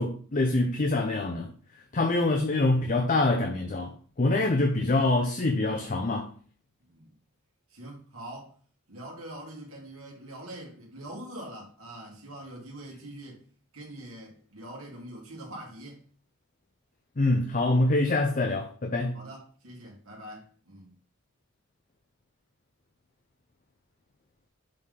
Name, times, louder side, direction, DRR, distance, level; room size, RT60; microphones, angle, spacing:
voice 1, 0.0-1.5 1.9-6.3 17.2-19.2, left 2 dB, 40° left, 0.6 m, -25 dB
voice 2, 6.8-7.2 7.7-8.6 8.9-13.4 13.7-16.0 19.1-20.9, right 1 dB, 85° right, 2.0 m, -44 dB
6.7 x 3.7 x 3.8 m
head